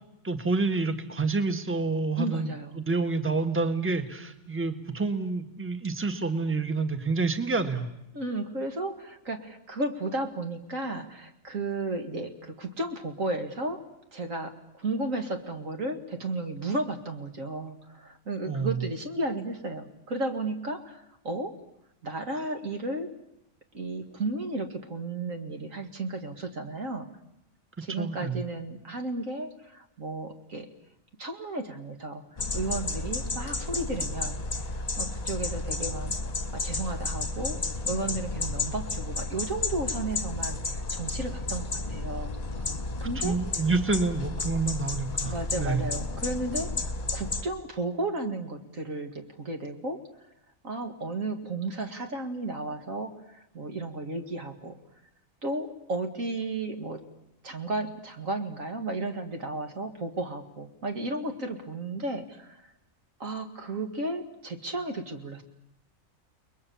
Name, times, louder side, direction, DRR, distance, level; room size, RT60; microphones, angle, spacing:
voice 1, 0.2-7.9 18.4-18.8 28.0-28.4 43.0-45.8, right 3 dB, 10° right, 8 dB, 1.5 m, -28 dB
voice 2, 2.2-2.8 8.1-13.8 14.1-21.5 22.0-23.1 23.7-27.1 27.8-30.7 31.2-32.2 32.5-34.4 34.7-36.1 36.5-37.6 37.9-42.4 43.0-43.4 45.2-50.0 50.6-54.8 55.4-57.0 57.4-62.7 63.2-65.4, right 2 dB, 75° right, 5 dB, 2.5 m, -33 dB
sound 1, 32.4-47.4, left 3 dB, 30° left, 1.4 m, -32 dB
30.0 x 21.5 x 7.1 m, 0.84 s
omnidirectional pair, 1.4 m